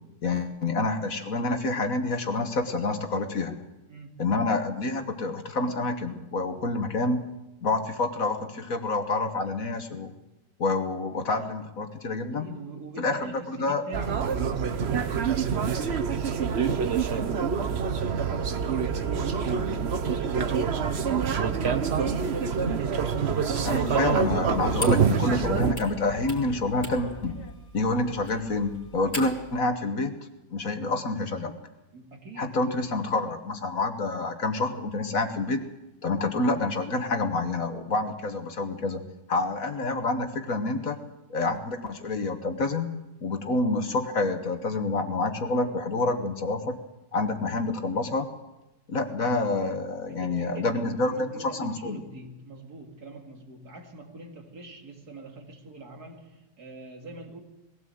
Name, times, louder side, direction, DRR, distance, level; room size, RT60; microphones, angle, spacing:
voice 1, 0.2-3.6 4.2-7.2 7.6-10.1 10.6-12.5 13.0-13.8 23.6-27.4 27.7-30.1 30.5-31.6 32.4-35.6 36.0-39.0 39.3-41.0 41.3-42.9 43.2-46.8 47.1-48.3 48.9-52.0, left 2 dB, 55° left, 1.8 m, -28 dB
voice 2, 3.9-4.3 6.7-6.8 12.3-22.4 31.9-32.9 50.1-57.4, right 2 dB, 65° right, 2.9 m, -44 dB
sound 1, 13.9-25.7, right 6 dB, 45° right, 1.1 m, -26 dB
sound 2, 17.4-27.5, left 1 dB, 75° left, 2.3 m, -44 dB
sound 3, 24.2-29.6, left 1 dB, 20° left, 3.2 m, -41 dB
20.5 x 16.5 x 7.9 m
omnidirectional pair, 1.8 m